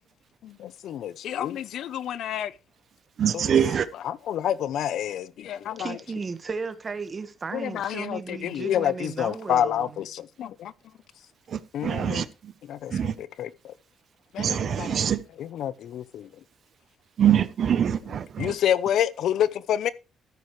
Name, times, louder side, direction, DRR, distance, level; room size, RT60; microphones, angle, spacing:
voice 1, 0.4-2.5 3.3-3.6 4.0-6.0 7.5-10.7 11.7-12.3 12.7-13.7 14.3-15.0 15.4-16.3 18.4-19.9, left 10 dB, 75° left, 0.6 m, -28 dB
voice 2, 3.2-3.9 11.5-12.5 12.9-13.1 14.4-15.2 17.2-18.5, right 9 dB, 60° right, 0.7 m, -24 dB
voice 3, 5.8-10.0, right 4 dB, 35° right, 1.4 m, -35 dB
13.0 x 9.4 x 3.2 m
cardioid pair, 90°, 0 cm